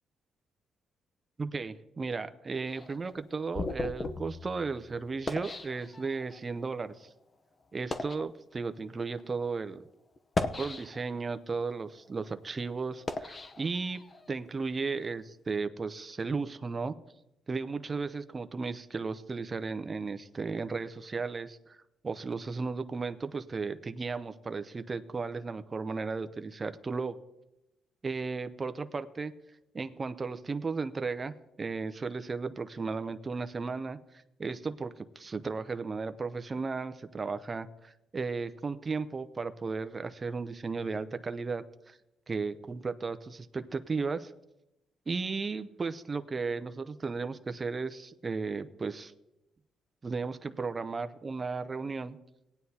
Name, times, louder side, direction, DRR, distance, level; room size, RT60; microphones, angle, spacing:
voice 1, 1.4-7.1 7.7-9.8 10.6-14.0 14.3-17.0 17.5-21.8 22.0-27.2 28.0-29.3 29.7-34.0 34.4-42.0 42.3-44.3 45.1-49.1 50.0-52.2, right 4 dB, 30° right, 10 dB, 0.7 m, -35 dB
sound 1, 2.7-6.4 7.1-7.2 7.7-8.3 9.1-9.2 10.2-11.3 11.8-14.3, left 3 dB, 35° left, 0.8 m, -37 dB
19.0 x 9.4 x 2.9 m, 0.89 s
cardioid pair, 90°, 0 cm